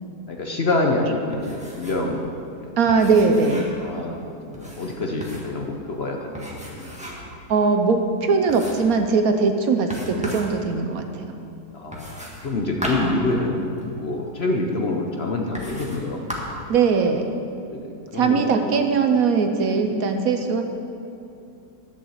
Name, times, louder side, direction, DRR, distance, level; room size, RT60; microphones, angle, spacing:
voice 1, 0.3-2.3 2.6-2.7 3.8-6.9 11.7-16.2 17.6-18.7 19.7-19.9, left 2 dB, 45° left, 1 dB, 0.9 m, -27 dB
sound 1, 1.3-2.1 2.4-2.5 2.9-3.8 4.5-5.6 6.3-7.4 7.8-7.9 8.5-9.0 9.9-10.5 11.9-13.9 14.7-14.8 15.5-16.0 16.3-16.7, equal, 5° right, 1.5 m, -34 dB
voice 2, 2.8-3.7 7.5-11.0 16.7-17.2 18.1-20.6, right 4 dB, 65° right, 6 dB, 1.1 m, -20 dB
11.0 x 7.1 x 7.2 m, 2.6 s
omnidirectional pair, 1.8 m